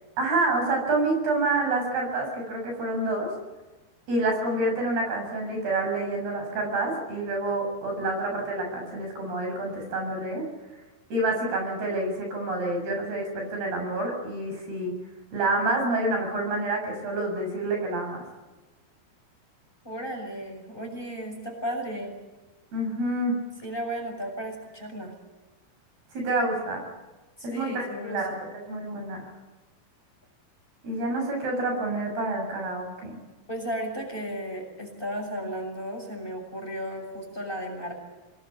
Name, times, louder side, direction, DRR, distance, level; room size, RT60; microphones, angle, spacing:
voice 1, 0.2-3.3 4.1-10.5 11.1-14.9 15.3-18.2 22.7-23.3 26.1-26.8 27.4-29.3 30.8-33.2, right 2 dB, 65° right, 2 dB, 9.0 m, -28 dB
voice 2, 19.8-22.1 23.6-25.1 27.4-28.4 33.5-37.9, equal, 10° left, 3 dB, 6.6 m, -34 dB
27.0 x 21.5 x 8.7 m, 1.2 s
omnidirectional pair, 4.8 m